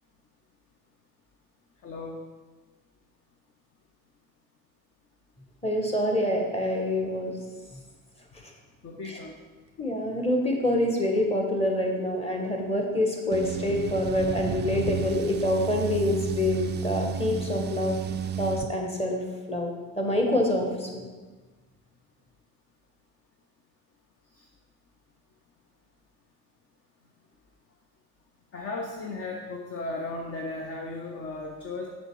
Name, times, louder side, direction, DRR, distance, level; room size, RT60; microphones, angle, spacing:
voice 1, 1.8-2.2 8.8-9.3 24.3-24.4 28.5-31.9, left 2 dB, 35° left, 1 dB, 1.0 m, -35 dB
voice 2, 5.6-7.3 9.0-9.2 9.8-18.0 18.4-19.2 19.5-21.0, left 1 dB, 15° left, 1 dB, 1.7 m, -26 dB
sound 1, 13.3-18.7, right 7 dB, 25° right, 0.4 m, -32 dB
6.3 x 5.6 x 4.8 m, 1.3 s
hypercardioid pair, 65°, 42 cm